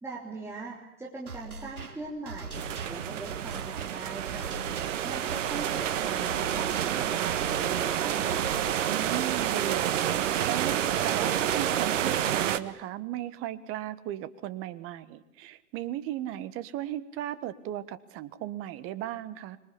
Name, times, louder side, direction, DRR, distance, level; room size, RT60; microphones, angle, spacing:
voice 1, 0.0-4.5 5.0-8.6, right 3 dB, 5° right, -4 dB, 3.4 m, -41 dB
sound 1, 1.3-9.2, right 3 dB, 80° right, 4.3 m, -42 dB
sound 2, 2.5-12.6, right 10 dB, 60° right, 1.5 m, -29 dB
voice 2, 8.9-19.6, right 13 dB, 30° right, 15 dB, 1.5 m, -36 dB
26.0 x 22.5 x 8.6 m, 0.81 s
hypercardioid pair, 115°, 43 cm